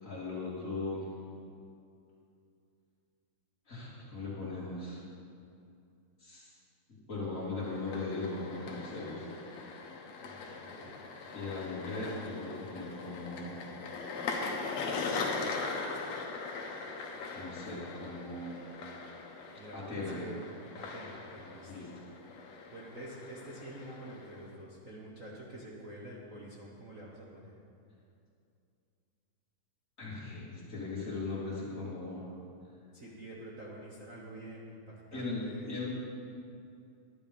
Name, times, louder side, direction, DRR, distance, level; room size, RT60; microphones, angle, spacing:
voice 1, 0.0-1.1 3.7-5.0 6.2-6.5 6.9-9.3 11.3-13.5 17.3-18.7 19.7-20.2 21.7-21.9 30.0-32.3 35.1-35.9, left 3 dB, 25° left, -7 dB, 2.8 m, -38 dB
sound 1, 7.6-24.6, left 4 dB, 65° left, 2.1 m, -41 dB
voice 2, 10.2-10.9 19.6-20.5 20.7-21.7 22.7-27.5 32.9-35.8, right 1 dB, 55° right, -5 dB, 0.8 m, -47 dB
11.0 x 10.5 x 5.3 m, 2.5 s
omnidirectional pair, 3.4 m